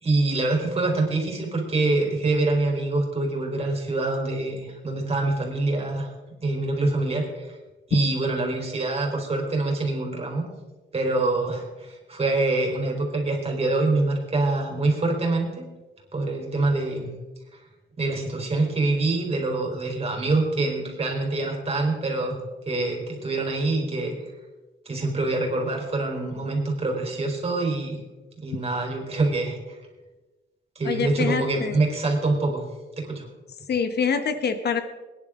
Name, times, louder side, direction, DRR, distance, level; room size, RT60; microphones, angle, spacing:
voice 1, 0.0-6.1 6.4-7.6 7.9-10.4 10.9-15.7 16.1-17.1 18.0-22.4 22.7-24.1 24.9-28.0 28.4-29.8 30.8-32.6 33.0-33.3, right 2 dB, 30° right, 0 dB, 4.2 m, -25 dB
voice 2, 30.8-31.8 33.7-34.8, left 6 dB, 55° left, 9 dB, 1.1 m, -25 dB
22.5 x 10.5 x 3.8 m, 1.2 s
cardioid pair, 130°, 20 cm